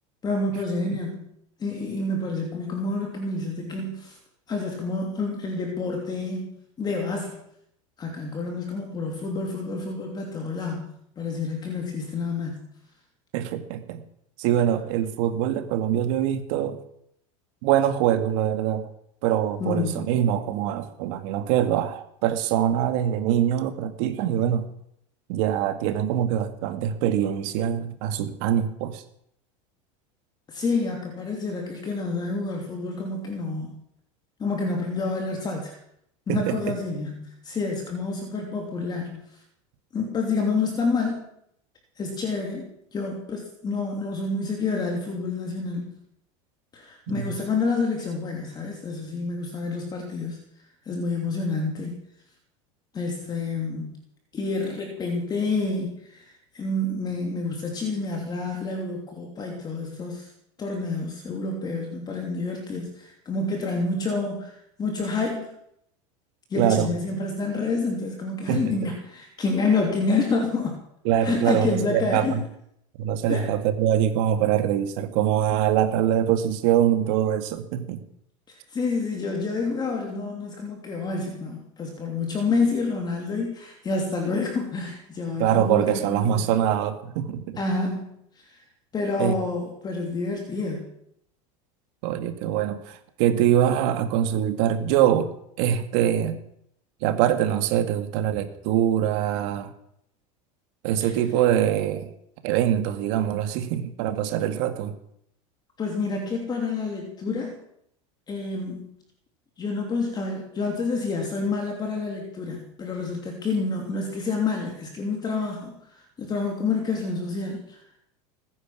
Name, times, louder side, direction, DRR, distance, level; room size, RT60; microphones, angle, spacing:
voice 1, 0.2-1.3 1.6-4.2 4.5-6.5 6.8-7.4 8.0-12.7 19.6-20.2 30.5-33.8 34.4-35.7 36.3-39.2 39.9-41.2 42.0-46.0 46.7-50.4 50.9-52.0 52.9-54.0 54.3-60.3 60.6-65.5 66.5-70.8 71.2-72.5 73.3-73.5 78.5-86.6 87.6-88.6 88.9-90.9 101.0-101.1 105.8-107.6 108.3-108.9 109.6-117.8, left 3 dB, 25° left, 1 dB, 3.1 m, -28 dB
voice 2, 13.3-14.0 14.4-16.8 17.6-18.9 19.2-24.7 25.3-29.0 36.3-36.6 47.1-47.3 66.6-66.9 68.5-68.9 71.1-72.4 73.0-78.0 85.4-87.6 89.2-89.4 92.0-95.3 95.6-96.4 97.0-99.7 100.8-102.1 102.4-104.9, right 10 dB, 65° right, 8 dB, 2.0 m, -24 dB
20.5 x 10.0 x 6.3 m, 0.73 s
supercardioid pair, 130°, 16 cm